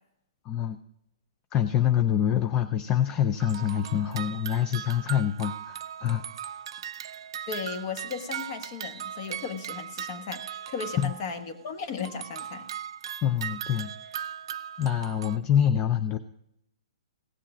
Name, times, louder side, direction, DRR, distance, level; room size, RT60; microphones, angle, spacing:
voice 1, 0.5-0.8 1.5-6.2 11.0-11.1 13.2-14.1 14.8-16.2, left 10 dB, 20° left, 10 dB, 0.4 m, -26 dB
sound 1, 3.4-11.6 12.0-15.4, right 10 dB, 55° right, 0.5 m, -38 dB
voice 2, 7.5-12.6, left 6 dB, 40° left, 8 dB, 1.3 m, -36 dB
16.5 x 7.5 x 4.9 m, 0.78 s
hypercardioid pair, 155°, 3 cm